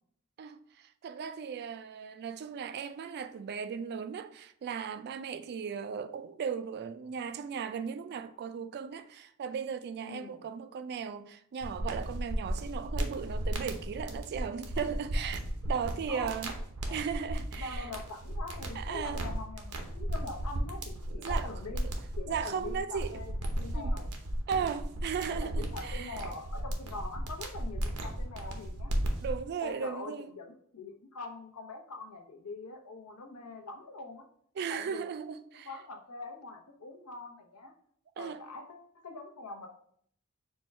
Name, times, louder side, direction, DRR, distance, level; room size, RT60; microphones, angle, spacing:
voice 1, 0.4-16.5 16.9-17.9 18.7-19.2 21.1-21.5 22.3-23.2 23.7-23.9 24.5-26.2 29.2-30.3 34.6-35.7 38.2-38.4, right 7 dB, 50° right, 0.3 m, -37 dB
voice 2, 10.0-10.4 16.1-16.3 16.9-17.0 17.6-23.3 23.6-24.1 24.5-24.8 25.3-29.0 29.6-34.2 34.7-35.0 35.6-37.7 38.2-39.7, left 3 dB, 90° left, 0.8 m, -43 dB
sound 1, 11.6-29.4, right 1 dB, 85° right, 0.8 m, -35 dB
4.4 x 2.3 x 4.2 m
head